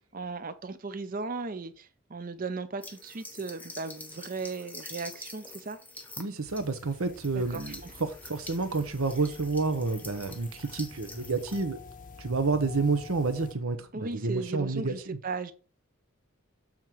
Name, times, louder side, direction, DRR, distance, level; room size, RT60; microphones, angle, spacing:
voice 1, 0.1-5.8 7.3-7.9 13.9-15.5, right 4 dB, 40° right, 0.6 m, -37 dB
sound 1, 2.8-11.6, left 2 dB, 10° left, 0.9 m, -46 dB
voice 2, 6.2-11.8 12.2-15.2, right 3 dB, 75° right, 0.9 m, -29 dB
sound 2, 6.4-13.5, left 3 dB, 40° left, 0.7 m, -48 dB
7.3 x 3.8 x 4.5 m
head